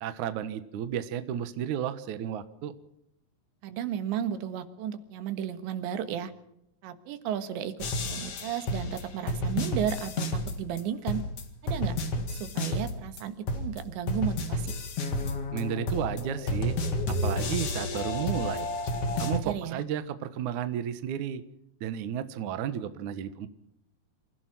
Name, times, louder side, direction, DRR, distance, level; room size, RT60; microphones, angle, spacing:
voice 1, 0.0-2.7 15.5-16.8 17.1-18.7 19.2-21.4 21.8-23.5, right 9 dB, 65° right, 12 dB, 2.1 m, -33 dB
voice 2, 3.6-6.3 6.8-11.2 11.6-12.0 12.3-14.7 19.3-19.8, right 9 dB, 85° right, 10 dB, 3.8 m, -34 dB
sound 1, 7.8-10.8 11.1-13.2 13.5-19.4, left 2 dB, 45° left, 2.3 m, -31 dB
27.0 x 16.0 x 6.0 m, 0.79 s
omnidirectional pair, 5.0 m